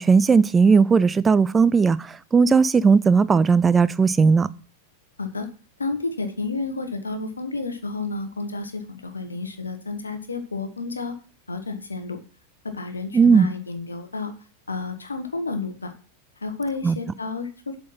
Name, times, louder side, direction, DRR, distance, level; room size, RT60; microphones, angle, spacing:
voice 1, 0.0-4.5 13.1-13.5 16.8-17.0, right 5 dB, 15° right, 0.4 m, -17 dB
voice 2, 5.8-11.1 11.5-12.2 12.6-14.3 14.7-15.9 16.4-17.8, left 3 dB, 75° left, 1.1 m, -31 dB
7.4 x 4.3 x 5.5 m
figure-of-eight pair, 90°, 0 cm